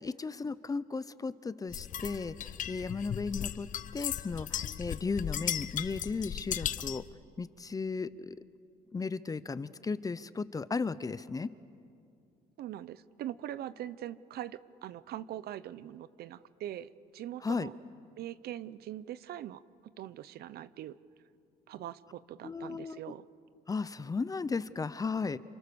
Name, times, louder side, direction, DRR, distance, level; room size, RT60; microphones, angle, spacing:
voice 1, 0.0-7.0 7.4-8.4 8.9-11.5 17.4-17.7 22.4-23.1 23.7-25.4, left 4 dB, 20° left, 16 dB, 0.8 m, -35 dB
sound 1, 1.7-7.1, left 10 dB, 50° left, 0.8 m, -37 dB
voice 2, 12.6-17.7 18.2-19.6 20.0-21.0 21.7-23.2, right 12 dB, 70° right, 16 dB, 0.9 m, -42 dB
29.5 x 27.0 x 7.0 m, 2.4 s
cardioid pair, 110°, 17 cm